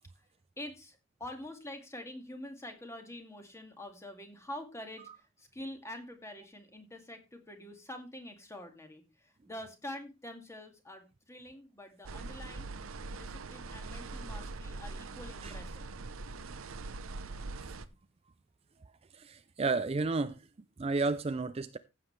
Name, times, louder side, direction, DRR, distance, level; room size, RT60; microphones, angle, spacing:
voice 1, 0.6-12.7 13.2-15.9, left 1 dB, 15° left, 2.1 m, -46 dB
sound 1, 12.0-17.8, right 3 dB, 75° right, 0.8 m, -42 dB
voice 2, 19.1-20.4 20.8-21.8, right 3 dB, 30° right, 0.4 m, -32 dB
15.0 x 7.6 x 3.3 m
head